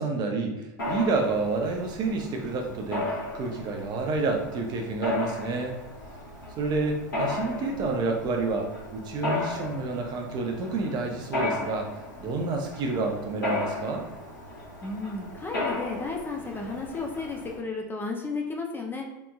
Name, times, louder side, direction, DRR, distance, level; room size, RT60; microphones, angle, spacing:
voice 1, 0.0-5.7 6.6-11.9 12.2-14.1, right 3 dB, 40° right, 3 dB, 0.6 m, -29 dB
Mechanisms, 0.8-17.6, left 2 dB, 90° left, 1.1 m, -35 dB
voice 2, 14.8-19.1, left 3 dB, 20° left, 1 dB, 0.5 m, -33 dB
3.4 x 2.9 x 2.3 m, 0.92 s
hypercardioid pair, 90°, 11 cm